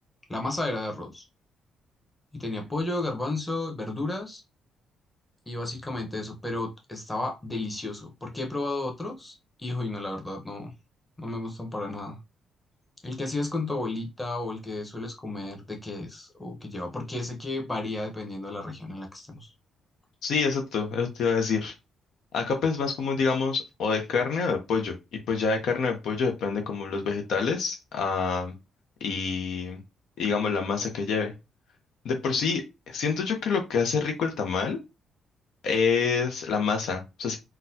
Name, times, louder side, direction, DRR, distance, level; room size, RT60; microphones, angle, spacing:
voice 1, 0.3-1.3 2.3-4.4 5.5-10.7 11.2-12.2 13.0-19.5, left 2 dB, 15° left, 2 dB, 1.0 m, -33 dB
voice 2, 20.2-21.7 22.3-24.9 25.3-28.5 29.0-29.8 30.2-31.3 32.0-34.8 35.6-37.4, left 5 dB, 75° left, 4 dB, 0.7 m, -27 dB
3.9 x 2.2 x 2.7 m, 0.25 s
cardioid pair, 90°, 0 cm